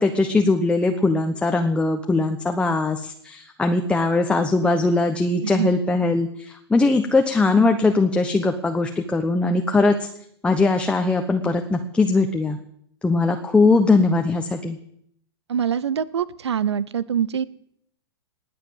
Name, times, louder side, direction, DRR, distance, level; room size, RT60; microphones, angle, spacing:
voice 1, 0.0-10.1 10.4-12.6 13.0-14.8, left 3 dB, 10° left, 5 dB, 1.0 m, -20 dB
voice 2, 15.5-17.5, right 8 dB, 85° right, 19 dB, 0.8 m, -24 dB
19.5 x 8.5 x 7.2 m, 0.69 s
hypercardioid pair, 120°, 14 cm